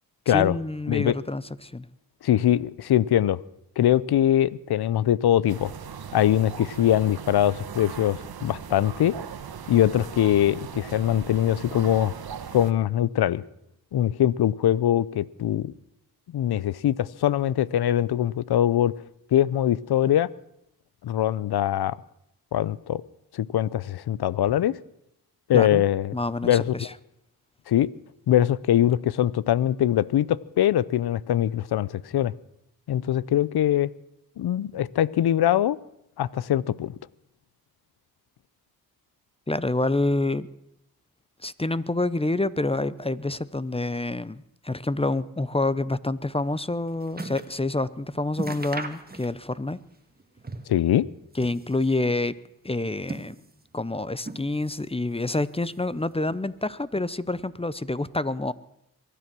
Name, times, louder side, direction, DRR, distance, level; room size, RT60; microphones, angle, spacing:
voice 1, 0.3-1.9 25.5-25.8 26.1-26.9 39.5-40.5 41.4-49.8 51.4-52.3 52.6-53.4 53.7-58.5, left 2 dB, 15° left, 17 dB, 0.7 m, -27 dB
voice 2, 2.2-3.4 3.8-5.7 6.1-9.1 9.7-12.1 12.5-13.4 13.9-15.7 16.3-18.9 19.3-20.3 21.0-22.0 22.5-23.0 23.3-24.8 25.5-26.1 26.4-26.9 27.7-27.9 28.3-32.3 32.9-33.9 34.4-35.8 36.2-36.9 50.7-51.0, left 11 dB, 90° left, 21 dB, 0.6 m, -22 dB
sound 1, 5.5-12.7, right 7 dB, 75° right, 1.2 m, -39 dB
sound 2, 46.4-47.6 47.9-48.0 48.3-49.6 49.9-50.8 51.2-52.1 52.7-53.7 54.2-54.9 55.2-56.0 56.6-56.7, right 2 dB, 25° right, 1.6 m, -39 dB
23.0 x 10.0 x 6.1 m, 0.79 s
cardioid pair, 55°, 37 cm